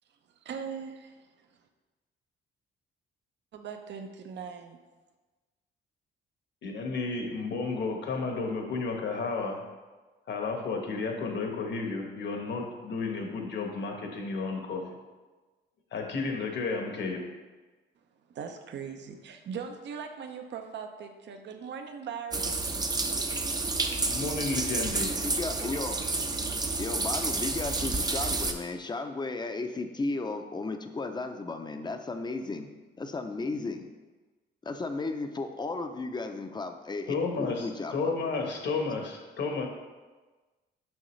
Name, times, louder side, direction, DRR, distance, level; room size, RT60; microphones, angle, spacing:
voice 1, 0.4-0.9 3.5-4.8 18.3-22.7, right 6 dB, 65° right, 6 dB, 0.7 m, -39 dB
voice 2, 6.6-9.6 10.3-14.8 15.9-17.2 24.1-25.1 37.1-39.7, left 4 dB, 65° left, 2 dB, 1.2 m, -32 dB
sound 1, 22.3-28.5, right 3 dB, 20° right, 0.6 m, -30 dB
voice 3, 25.2-26.0 26.8-32.7 33.0-33.9 34.6-38.1, left 3 dB, 20° left, 7 dB, 0.6 m, -34 dB
6.3 x 5.7 x 3.2 m, 1.3 s
cardioid pair, 90°, 20 cm